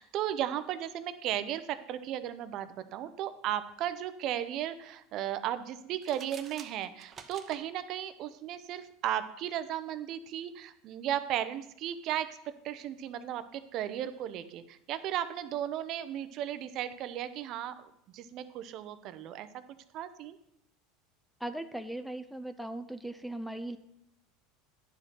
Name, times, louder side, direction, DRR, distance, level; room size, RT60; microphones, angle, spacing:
voice 1, 0.0-12.4 12.6-19.6 19.9-20.4, right 11 dB, 50° right, 12 dB, 0.6 m, -35 dB
sound 1, 5.9-7.6, right 7 dB, 30° right, 0.9 m, -49 dB
voice 2, 21.4-23.8, right 1 dB, ahead, 8 dB, 0.5 m, -38 dB
10.5 x 5.1 x 5.7 m, 0.76 s
supercardioid pair, 120°, 0 cm